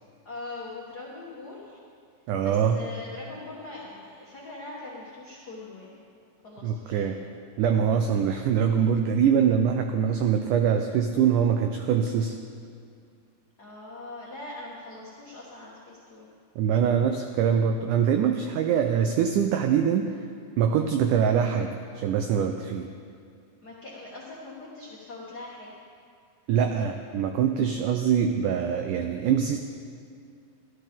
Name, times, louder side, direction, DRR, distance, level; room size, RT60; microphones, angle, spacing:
voice 1, 0.2-1.8 2.4-6.0 6.4-7.2 12.0-12.3 13.6-16.3 23.6-25.8, left 2 dB, 80° left, -6 dB, 0.9 m, -42 dB
voice 2, 2.3-2.8 6.6-7.2 7.6-12.4 16.6-20.2 20.6-22.9 26.5-29.6, right 8 dB, 90° right, 5 dB, 1.8 m, -24 dB
13.5 x 12.5 x 3.6 m, 2.3 s
omnidirectional pair, 4.2 m